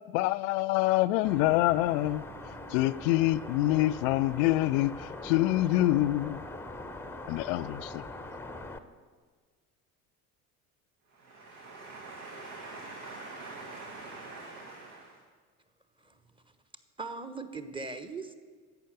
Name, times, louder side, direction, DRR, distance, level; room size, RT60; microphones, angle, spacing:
voice 1, 0.1-2.2 2.7-6.5 7.3-8.0, left 16 dB, 60° left, 0.5 m, -26 dB
sound 1, 1.2-8.8, left 2 dB, 5° left, 0.8 m, -42 dB
voice 2, 11.0-15.3, right 3 dB, 70° right, 1.9 m, -44 dB
voice 3, 17.0-18.3, right 4 dB, 10° right, 1.1 m, -39 dB
11.5 x 8.0 x 8.0 m
figure-of-eight pair, 55°, 45 cm